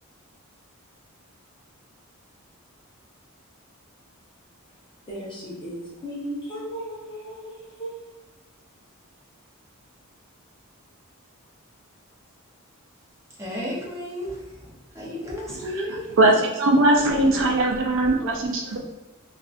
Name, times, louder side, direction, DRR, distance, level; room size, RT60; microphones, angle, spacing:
voice 1, 5.1-7.5 7.8-8.0, equal, 20° left, -6 dB, 0.7 m, -35 dB
voice 2, 13.4-14.3 14.9-16.0, equal, 15° right, -5 dB, 0.6 m, -32 dB
voice 3, 15.6-18.8, right 1 dB, 55° right, 0 dB, 0.4 m, -20 dB
2.6 x 2.4 x 2.4 m, 1.1 s
head